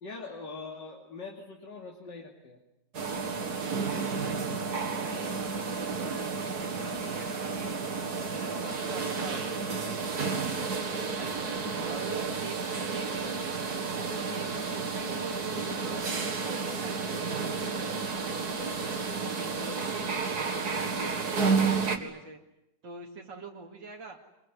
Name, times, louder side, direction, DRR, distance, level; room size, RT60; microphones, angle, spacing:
voice 1, 0.0-2.6, left 3 dB, 75° left, 1 dB, 3.3 m, -42 dB
sound 1, 2.9-22.0, right 4 dB, 60° right, 2.6 m, -31 dB
voice 2, 3.7-7.8 8.1-12.6 12.9-19.0 19.4-22.4 22.8-24.2, right 3 dB, 90° right, 0 dB, 3.1 m, -45 dB
26.0 x 23.0 x 9.7 m, 0.88 s
omnidirectional pair, 2.0 m